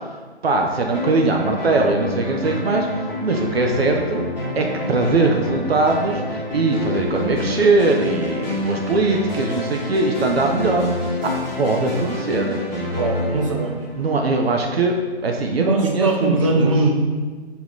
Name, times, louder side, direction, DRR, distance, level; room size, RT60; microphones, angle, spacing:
voice 1, 0.4-2.9 3.2-4.2 4.5-10.9 11.6-12.6 14.0-16.7, right 3 dB, 60° right, 2 dB, 0.8 m, -20 dB
sound 1, 0.9-14.5, left 1 dB, 5° right, 0.9 m, -28 dB
voice 2, 12.9-13.8 15.6-16.9, right 2 dB, 30° right, 2 dB, 0.6 m, -20 dB
5.2 x 4.9 x 3.8 m, 1.4 s
hypercardioid pair, 160°, 34 cm